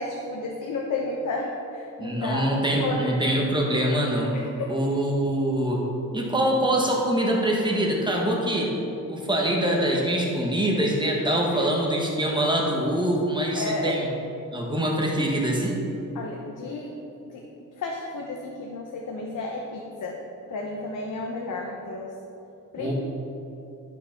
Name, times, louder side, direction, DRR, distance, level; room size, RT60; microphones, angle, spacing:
voice 1, 0.0-3.1 4.3-5.0 11.5-11.7 13.6-14.0 16.1-16.9 17.3-17.4 17.8-20.2 20.5-22.1 22.7-22.9, left 3 dB, 65° left, 0 dB, 1.0 m, -32 dB
voice 2, 2.0-4.4 4.7-5.8 6.1-8.7 9.1-14.1 14.5-15.8 22.8-22.9, right 1 dB, 15° right, -2 dB, 1.2 m, -24 dB
11.0 x 5.8 x 5.8 m, 2.8 s
wide cardioid pair, 160°, 33 cm